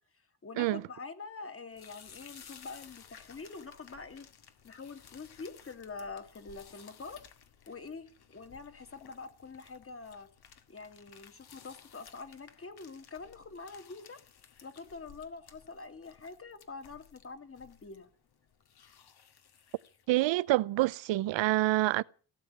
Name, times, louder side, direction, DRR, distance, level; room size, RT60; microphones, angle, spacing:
voice 1, 0.4-4.3 4.6-7.2 7.7-10.3 10.7-14.2 14.6-18.1, left 4 dB, 30° left, 2.5 m, -45 dB
sound 1, 1.7-20.4, left 7 dB, 60° left, 2.3 m, -57 dB
voice 2, 20.1-22.0, right 17 dB, 90° right, 0.7 m, -27 dB
17.5 x 8.0 x 9.7 m
cardioid pair, 115°, 43 cm